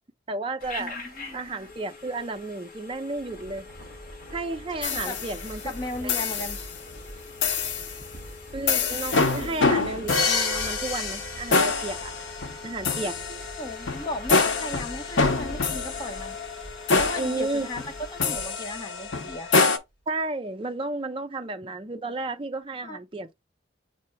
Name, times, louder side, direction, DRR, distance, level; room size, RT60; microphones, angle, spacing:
voice 1, 0.3-1.0 1.3-3.7 4.3-5.7 6.0-6.1 8.5-12.1 12.6-13.2 17.2-17.7 20.1-23.3, right 2 dB, 30° right, 0.5 m, -32 dB
Telephone, 0.6-18.7, left 3 dB, 45° left, 1.1 m, -45 dB
voice 2, 0.8-1.4 4.9-5.2 5.6-6.6 13.0-16.4 17.0-17.8 18.1-19.6 22.8-23.0, left 2 dB, 20° left, 0.9 m, -36 dB
Thunder, 3.1-19.7, right 1 dB, 60° left, 2.4 m, -44 dB
sound 1, 4.8-5.6 6.1-6.7 7.4-8.0 8.7-19.8, left 4 dB, 85° left, 0.8 m, -26 dB
7.4 x 2.9 x 2.2 m
head